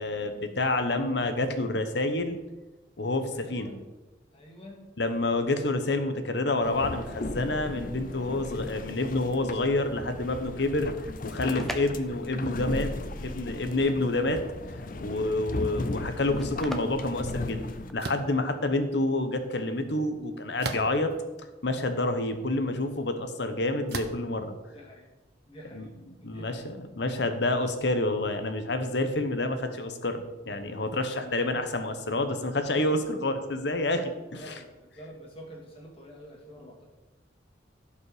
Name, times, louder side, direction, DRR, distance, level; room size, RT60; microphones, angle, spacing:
voice 1, 0.0-2.4 3.0-3.7 5.0-10.9 11.2-12.9 13.2-14.4 15.0-17.7 17.9-21.1 21.6-24.5 25.7-25.8 26.2-30.2 30.4-34.5, left 2 dB, 65° left, 8 dB, 1.0 m, -28 dB
voice 2, 3.3-3.8 4.3-5.0 15.1-15.3 24.7-25.1 25.4-26.7 31.2-31.7 32.3-32.5 34.4-36.9, equal, 30° left, -1 dB, 2.3 m, -48 dB
sound 1, 6.6-17.9, left 2 dB, 45° left, 0.7 m, -36 dB
sound 2, 11.2-18.1, equal, ahead, 0.8 m, -43 dB
sound 3, 18.0-18.3 20.6-21.2 21.9-22.0 23.9-24.3, right 4 dB, 60° right, 0.9 m, -35 dB
16.0 x 5.4 x 5.0 m, 1.1 s
head